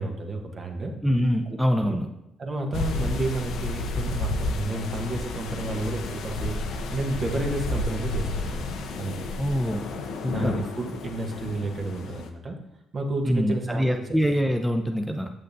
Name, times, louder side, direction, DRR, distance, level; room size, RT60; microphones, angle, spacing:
voice 1, 0.0-0.9 1.5-2.0 2.4-6.5 6.9-9.4 10.2-12.6 12.9-14.2, right 2 dB, 45° right, 3 dB, 1.1 m, -31 dB
voice 2, 1.0-2.1 9.4-9.9 10.2-10.6 13.3-15.3, equal, ahead, 3 dB, 0.6 m, -24 dB
sound 1, 2.7-12.3, left 2 dB, 70° left, 0.6 m, -31 dB
7.2 x 6.4 x 2.7 m, 0.86 s
hypercardioid pair, 55°, 0 cm